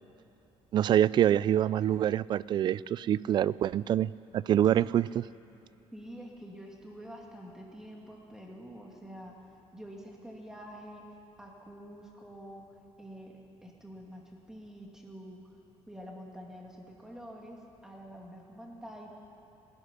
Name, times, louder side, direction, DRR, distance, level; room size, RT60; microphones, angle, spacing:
voice 1, 0.7-5.3, right 11 dB, 40° right, 20 dB, 0.3 m, -26 dB
voice 2, 5.9-9.4 9.7-11.1 11.4-12.7 13.0-13.3 13.6-15.4 15.9-19.2, equal, 5° right, -1 dB, 2.6 m, -47 dB
20.0 x 13.0 x 10.0 m, 2.9 s
cardioid pair, 160°, 11 cm